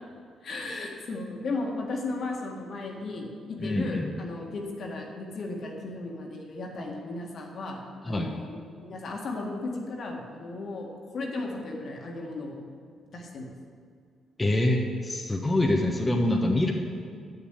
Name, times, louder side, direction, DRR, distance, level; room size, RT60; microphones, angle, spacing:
voice 1, 0.4-7.8 8.1-10.9 11.1-12.6 13.1-13.5, left 2 dB, 60° left, 0 dB, 1.8 m, -35 dB
voice 2, 3.6-4.1 8.0-8.3 14.4-16.7, left 1 dB, 20° left, 0 dB, 1.1 m, -25 dB
7.2 x 7.1 x 8.2 m, 2.2 s
supercardioid pair, 60°, 0 cm